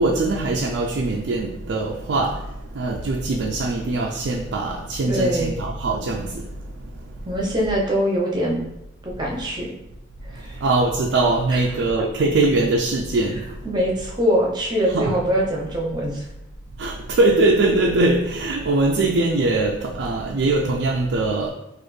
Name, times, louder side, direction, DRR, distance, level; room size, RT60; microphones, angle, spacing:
voice 1, 0.0-2.4 2.7-6.3 10.6-13.4 14.9-15.3 16.8-21.5, right 2 dB, 65° right, 0 dB, 0.4 m, -21 dB
voice 2, 5.1-5.6 7.3-8.6 9.0-9.7 10.3-10.6 11.5-11.6 13.6-16.3, equal, 20° right, -2 dB, 0.7 m, -23 dB
4.2 x 2.5 x 3.2 m, 0.88 s
head